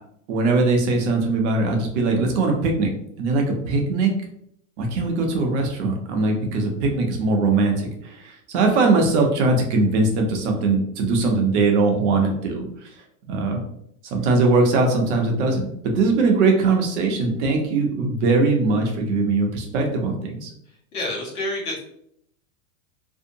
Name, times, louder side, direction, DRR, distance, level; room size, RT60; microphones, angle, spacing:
voice 1, 0.3-2.9 3.2-4.1 4.8-12.9 13.3-13.6 14.0-20.5, right 3 dB, 55° right, 2 dB, 0.7 m, -21 dB
voice 2, 20.9-21.8, left 1 dB, 80° left, -2 dB, 1.2 m, -28 dB
2.6 x 2.1 x 2.7 m, 0.71 s
supercardioid pair, 150°, 43 cm